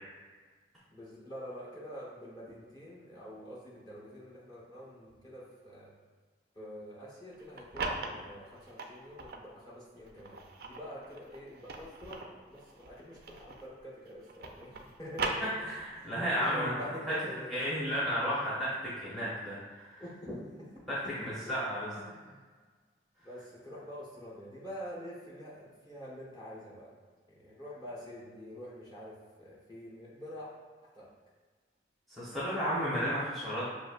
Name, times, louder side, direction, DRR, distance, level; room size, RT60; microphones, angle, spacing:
voice 1, 0.9-5.9 6.5-14.7 15.0-15.7 16.0-17.7 20.0-20.3 20.6-20.7 21.0-21.2 22.0-22.5 23.2-26.9 27.3-30.5 30.9-31.1, equal, 25° left, -8 dB, 1.1 m, -46 dB
sound 1, 7.3-9.5 10.0-13.8 14.1-16.1, right 3 dB, 60° right, 0.4 m, -39 dB
voice 2, 15.4-16.7 17.0-17.1 17.5-18.7 19.0-20.0 20.9-21.0 21.2-21.9 32.1-33.7, equal, ahead, -10 dB, 0.8 m, -33 dB
6.1 x 2.6 x 2.4 m, 1.5 s
head